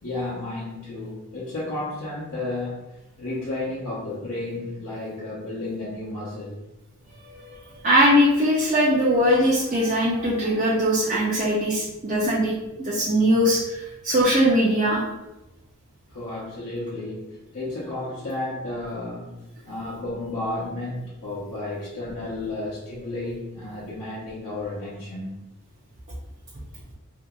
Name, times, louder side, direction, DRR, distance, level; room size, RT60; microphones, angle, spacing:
voice 1, 0.0-6.6 16.1-25.4, left 2 dB, 85° left, -8 dB, 0.7 m, -32 dB
voice 2, 7.1-7.5 7.8-15.0, equal, 35° right, -6 dB, 0.4 m, -21 dB
2.7 x 2.7 x 2.3 m, 0.99 s
head